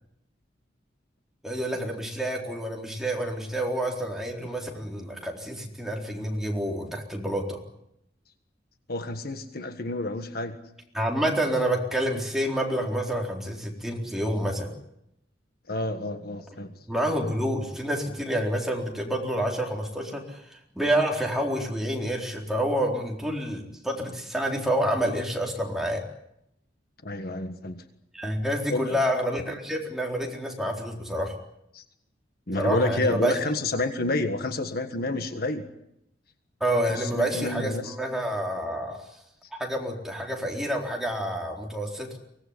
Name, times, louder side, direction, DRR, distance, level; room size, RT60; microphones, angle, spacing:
voice 1, 1.4-7.6 10.9-14.7 16.9-26.0 28.1-31.4 32.5-33.3 36.6-39.0 39.5-42.2, right 1 dB, ahead, 0 dB, 4.0 m, -28 dB
voice 2, 8.9-10.6 15.7-16.8 27.0-27.8 28.7-29.0 31.7-31.8 32.5-35.7 36.9-37.9, left 2 dB, 55° left, 8 dB, 1.6 m, -29 dB
24.5 x 18.0 x 9.9 m, 0.80 s
head